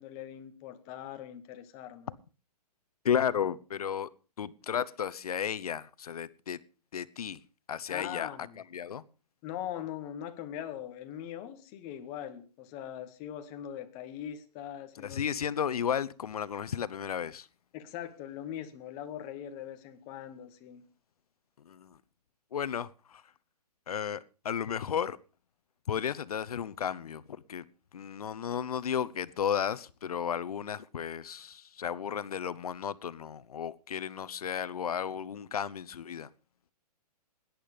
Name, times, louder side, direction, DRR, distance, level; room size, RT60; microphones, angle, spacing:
voice 1, 0.0-2.1 7.9-8.6 9.4-15.2 17.7-20.8, left 10 dB, 15° left, 1.0 m, -41 dB
voice 2, 3.0-4.1 4.4-6.6 6.9-7.4 7.7-8.3 8.7-9.0 15.0-17.5 21.7-22.0 22.5-23.2 23.9-25.2 25.9-27.6 27.9-36.3, left 8 dB, 65° left, 0.9 m, -33 dB
17.0 x 11.0 x 5.1 m
hypercardioid pair, 170°, 21 cm